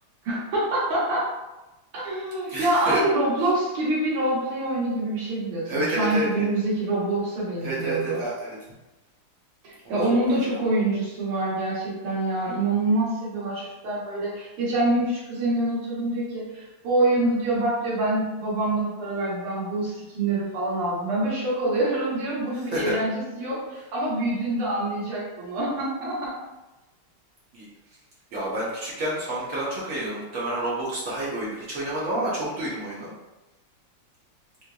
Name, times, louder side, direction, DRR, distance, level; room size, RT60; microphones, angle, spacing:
voice 1, 0.2-1.3 1.9-8.2 9.6-26.4, right 2 dB, 90° right, -7 dB, 2.1 m, -26 dB
voice 2, 2.5-3.0 5.7-6.5 7.6-8.5 9.8-10.6 22.5-22.9 27.5-27.7 28.3-33.1, right 1 dB, 65° right, -7 dB, 0.8 m, -29 dB
4.3 x 2.5 x 2.2 m, 1.0 s
omnidirectional pair, 2.4 m